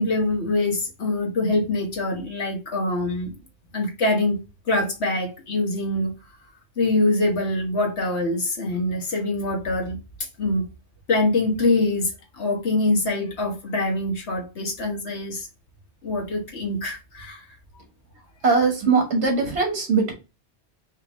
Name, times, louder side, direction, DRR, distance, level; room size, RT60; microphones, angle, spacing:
voice 1, 0.0-3.3 3.7-4.4 4.7-6.1 6.8-10.0 10.4-10.6 11.1-15.5 16.0-17.4, left 2 dB, 85° left, 1.6 m, -24 dB
voice 2, 18.4-20.1, right 4 dB, 85° right, 1.6 m, -20 dB
4.9 x 2.9 x 3.0 m
omnidirectional pair, 1.1 m